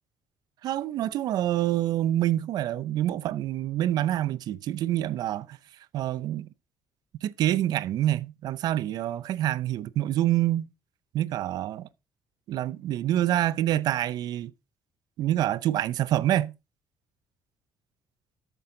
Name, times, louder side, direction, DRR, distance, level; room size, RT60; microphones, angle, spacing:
voice 1, 0.6-5.6 5.9-6.5 7.2-10.7 11.1-11.9 12.5-14.5 15.2-16.5, right 13 dB, 70° right, 0.6 m, -26 dB
13.0 x 6.1 x 3.8 m
cardioid pair, 105°, 7 cm